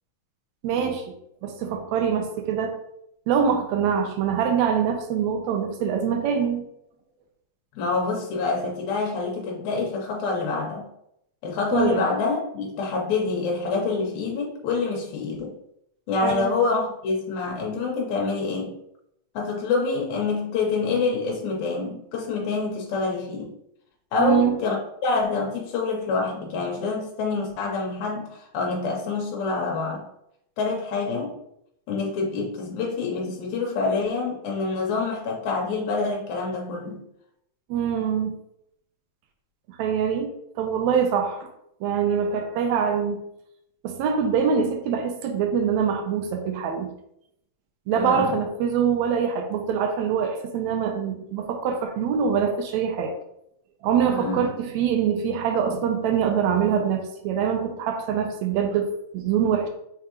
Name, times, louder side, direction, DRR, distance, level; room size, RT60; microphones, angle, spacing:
voice 1, 0.6-1.0 1.4-2.8 3.3-6.7 11.7-12.1 16.2-16.5 24.2-24.5 37.7-38.4 39.8-41.5 41.8-43.2 43.8-46.9 47.9-53.1 53.8-59.7, right 7 dB, 80° right, 5 dB, 1.8 m, -24 dB
voice 2, 7.8-10.9 11.4-15.5 16.1-18.7 19.4-23.5 24.1-30.0 30.6-31.4 31.9-37.0 47.9-48.4 54.1-54.5, left 4 dB, 90° left, -1 dB, 2.0 m, -26 dB
4.8 x 3.5 x 2.8 m, 0.77 s
omnidirectional pair, 3.3 m